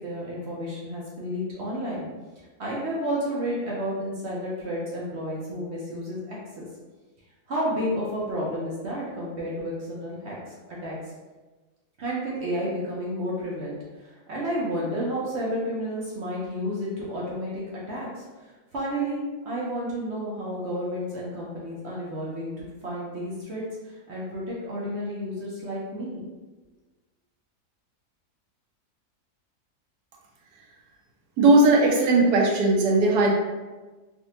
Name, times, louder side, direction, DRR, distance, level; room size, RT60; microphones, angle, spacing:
voice 1, 0.0-2.1 2.6-6.7 7.5-11.0 12.0-26.2, equal, 55° right, -5 dB, 0.8 m, -31 dB
voice 2, 31.4-33.3, right 2 dB, 85° right, -1 dB, 1.2 m, -18 dB
3.4 x 2.5 x 2.8 m, 1.2 s
omnidirectional pair, 1.7 m